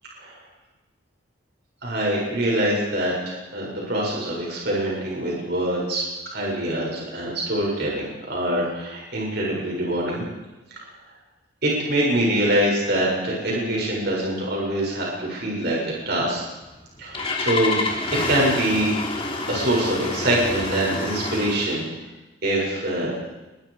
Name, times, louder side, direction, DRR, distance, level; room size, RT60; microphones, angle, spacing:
voice 1, 1.8-6.0 6.3-10.2 10.7-10.8 11.6-16.4 17.0-17.8 18.1-18.9 19.5-21.8 22.4-23.2, right 1 dB, 50° right, -3 dB, 7.4 m, -24 dB
Engine starting, 16.6-21.8, left 2 dB, 25° left, 3.3 m, -28 dB
28.0 x 23.5 x 5.2 m, 1.1 s
head